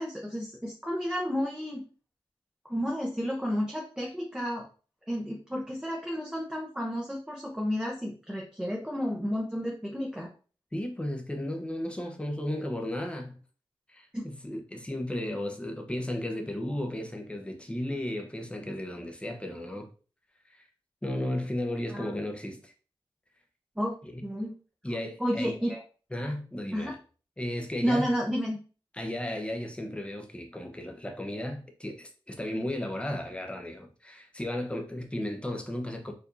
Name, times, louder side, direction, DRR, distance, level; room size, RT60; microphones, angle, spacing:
voice 1, 0.0-1.9 2.7-4.6 5.1-10.3 14.1-14.2 21.9-22.1 23.8-24.0 24.2-24.5 25.2-25.8 26.7-26.9 27.8-28.6, equal, 10° right, 0.9 m, -31 dB
voice 2, 10.7-13.4 13.9-19.9 20.5-20.7 21.0-22.7 24.0-24.2 24.8-25.6 26.1-26.9 27.4-28.1 28.9-36.1, left 1 dB, 10° left, 0.9 m, -34 dB
4.6 x 3.4 x 2.7 m
wide cardioid pair, 80°, 10 cm